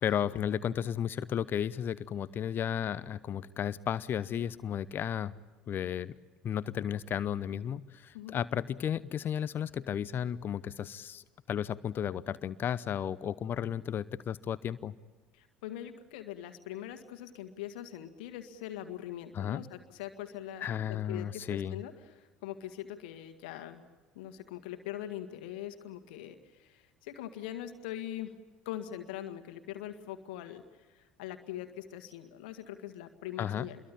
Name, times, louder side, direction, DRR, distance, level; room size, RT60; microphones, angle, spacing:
voice 1, 0.0-5.3 5.7-6.1 6.4-14.9 19.3-19.6 20.6-21.8 33.4-33.7, left 9 dB, 40° left, 17 dB, 0.8 m, -33 dB
voice 2, 15.3-23.8 24.2-28.3 28.7-30.6 30.9-33.8, left 12 dB, 65° left, 8 dB, 1.8 m, -42 dB
27.5 x 23.0 x 8.8 m, 1.3 s
figure-of-eight pair, 65°, 5 cm